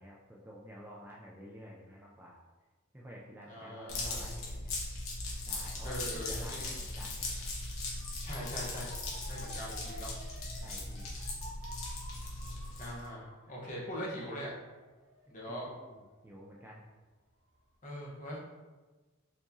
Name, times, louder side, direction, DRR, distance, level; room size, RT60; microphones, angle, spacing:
voice 1, 0.0-2.4 2.9-4.8 5.5-7.6 10.6-11.1 15.5-16.8, equal, 10° right, -4 dB, 0.3 m, -51 dB
voice 2, 3.5-4.3 5.8-6.7 8.2-8.9 9.3-10.1 12.8-14.5 15.3-15.7 17.8-18.4, equal, 35° left, -4 dB, 0.9 m, -41 dB
sound 1, 3.9-13.1, left 2 dB, 70° left, 1.0 m, -39 dB
Motor vehicle (road) / Siren, 8.0-16.9 17.3-17.8, right 1 dB, 60° right, 0.6 m, -53 dB
4.5 x 2.9 x 2.6 m, 1.3 s
head